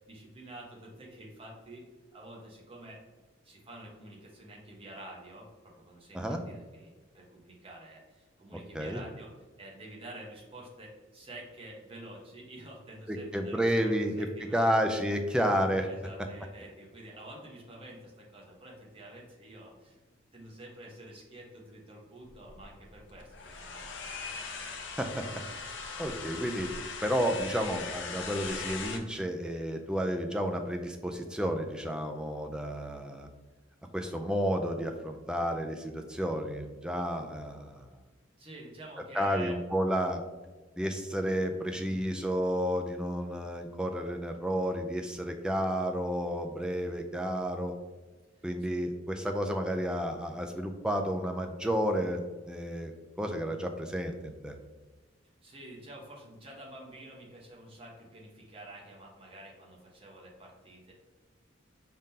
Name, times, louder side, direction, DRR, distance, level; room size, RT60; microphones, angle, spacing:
voice 1, 0.1-3.0 3.4-9.3 9.6-14.7 15.4-15.5 15.9-20.0 20.3-23.9 38.4-39.6 41.8-42.1 48.4-48.5 55.4-60.9, right 1 dB, 30° right, -2 dB, 1.1 m, -48 dB
voice 2, 13.1-14.3 14.5-15.9 25.0-25.3 26.0-26.7 27.0-33.3 33.9-37.8 39.1-40.2 40.8-47.7 48.4-52.2 52.5-52.9 53.2-54.6, equal, 5° right, 4 dB, 0.4 m, -31 dB
sound 1, 22.2-29.0, left 4 dB, 65° left, 0.6 m, -40 dB
5.0 x 3.6 x 2.8 m, 1.3 s
head